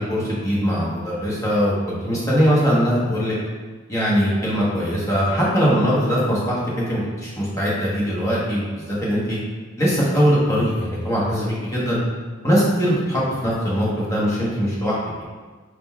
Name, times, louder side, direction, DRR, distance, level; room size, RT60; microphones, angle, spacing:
voice 1, 0.0-3.3 3.9-9.4 9.8-12.0 12.4-15.2, equal, 15° left, -7 dB, 1.0 m, -21 dB
4.5 x 3.7 x 2.3 m, 1.4 s
head